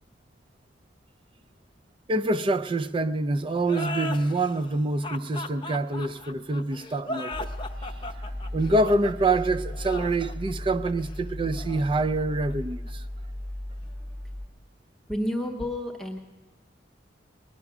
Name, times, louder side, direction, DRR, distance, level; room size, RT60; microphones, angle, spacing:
voice 1, 2.1-7.5 8.5-13.0, right 2 dB, 30° right, 0.4 m, -26 dB
sound 1, 3.6-12.9, left 2 dB, 25° left, 0.8 m, -38 dB
sound 2, 7.3-14.5, left 1 dB, 65° right, 2.1 m, -36 dB
voice 2, 15.1-16.2, left 1 dB, ahead, 0.9 m, -30 dB
20.5 x 11.0 x 6.0 m
head